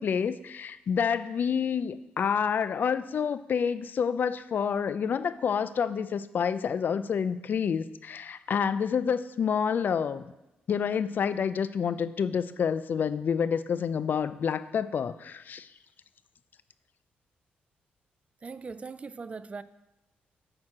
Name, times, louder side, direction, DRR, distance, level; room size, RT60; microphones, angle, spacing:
voice 1, 0.0-10.2 10.7-15.7, left 7 dB, 55° left, 14 dB, 0.4 m, -28 dB
voice 2, 18.4-19.6, right 4 dB, 35° right, 15 dB, 0.3 m, -40 dB
8.6 x 4.5 x 4.9 m, 0.95 s
cardioid pair, 75°, 4 cm